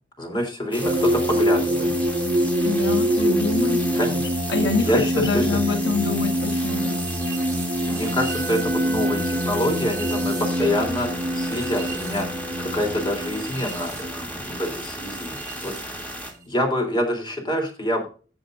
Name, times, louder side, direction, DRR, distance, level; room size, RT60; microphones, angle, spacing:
voice 1, 0.2-1.9 3.9-4.3 4.8-5.4 7.9-15.4 15.6-16.1 16.5-18.1, equal, 25° left, 2 dB, 3.3 m, -26 dB
sound 1, 0.7-16.3, equal, 10° left, 2.7 m, -35 dB
sound 2, 0.8-15.8, equal, 20° right, 2.4 m, -25 dB
voice 2, 2.6-3.8 4.5-6.9, left 3 dB, 85° left, 3 dB, 1.6 m, -25 dB
Wind instrument woodwind instrument, 8.3-13.5, equal, 60° right, 4.3 m, -36 dB
15.5 x 6.8 x 2.6 m, 0.35 s
head